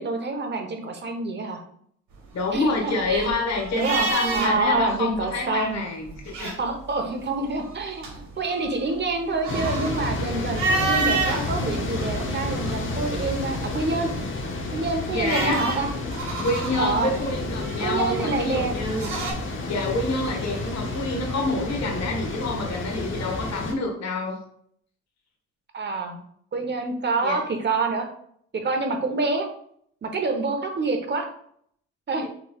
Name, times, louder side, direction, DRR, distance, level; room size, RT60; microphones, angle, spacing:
voice 1, 0.0-1.6 2.5-3.3 3.7-5.9 6.6-14.1 14.7-15.9 16.8-17.1 17.8-18.7 25.7-26.2 26.5-28.1 28.5-29.5 30.0-31.3 32.1-32.3, right 3 dB, 35° right, 4 dB, 1.1 m, -27 dB
voice 2, 2.3-6.6 15.1-15.7 16.4-19.1 19.5-24.4 27.2-27.4 32.2-32.3, left 3 dB, 60° left, 0 dB, 1.6 m, -27 dB
sound 1, 2.3-4.8 5.1-5.2 6.0-6.9 7.5-11.4 12.0-13.0 14.5-19.3, right 3 dB, 80° right, 1.9 m, -30 dB
sound 2, 9.5-23.7, left 2 dB, 40° left, 1.0 m, -30 dB
6.0 x 3.3 x 2.4 m, 0.64 s
cardioid pair, 90°, 30 cm